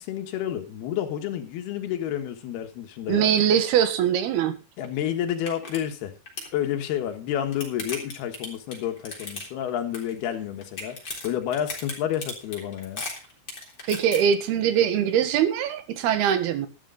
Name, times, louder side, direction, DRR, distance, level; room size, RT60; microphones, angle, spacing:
voice 1, 0.0-3.3 4.8-6.1 6.5-13.0, left 10 dB, 80° left, 6 dB, 3.5 m, -30 dB
voice 2, 3.1-4.6 13.8-16.7, right 9 dB, 80° right, 10 dB, 3.4 m, -22 dB
sound 1, 4.8-4.9 5.3-5.8 6.1-6.5 7.2-9.7 9.9-10.3 10.6-14.2, left 3 dB, 25° left, 3.9 m, -36 dB
13.0 x 12.5 x 3.8 m, 0.30 s
omnidirectional pair, 4.5 m